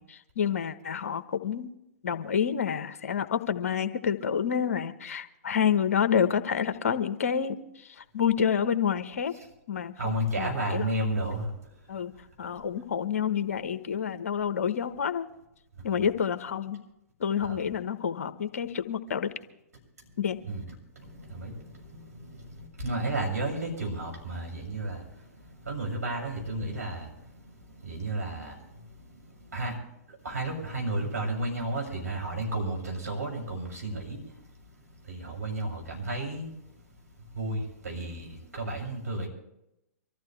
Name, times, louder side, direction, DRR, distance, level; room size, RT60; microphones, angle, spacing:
voice 1, 0.0-1.7 2.0-9.3 9.7-10.9 11.9-15.3 15.8-16.8 17.2-19.3 20.2-20.4, left 7 dB, 65° left, 11 dB, 1.1 m, -28 dB
voice 2, 10.0-11.5 17.4-17.6 20.5-20.6 21.0-25.0 25.3-27.2 27.7-28.8 29.5-29.8 30.2-34.2 35.0-36.5 37.3-39.3, right 1 dB, 80° right, 0 dB, 6.9 m, -32 dB
25.0 x 14.5 x 3.4 m, 0.85 s
figure-of-eight pair, 110°, 8 cm